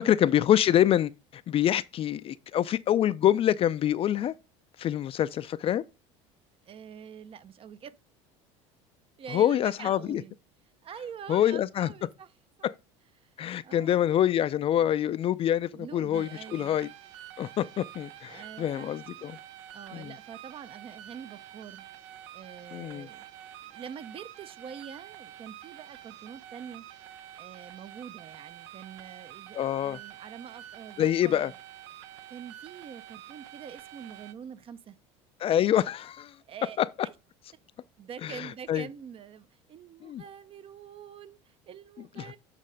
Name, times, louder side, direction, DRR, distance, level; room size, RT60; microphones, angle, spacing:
voice 1, 0.0-4.3 4.8-5.8 9.3-10.2 11.3-11.9 12.6-12.7 13.4-16.9 17.4-19.4 19.9-20.1 22.7-23.1 29.5-30.0 31.0-31.5 35.4-36.3 36.8-36.9 38.2-38.9 40.0-40.2 42.2-42.3, left 11 dB, 35° left, 0.4 m, -26 dB
voice 2, 6.7-8.0 9.2-10.3 10.8-12.3 12.6-12.7 13.2-13.3 13.6-14.1 15.7-16.8 18.3-19.4 19.7-21.9 22.3-23.2 23.6-26.8 27.4-31.5 32.3-35.0 36.5-37.1 38.0-42.4, right 8 dB, 35° right, 0.5 m, -45 dB
sound 1, 16.1-34.3, right 12 dB, 80° right, 0.6 m, -48 dB
7.6 x 3.2 x 5.0 m
supercardioid pair, 100°, 16 cm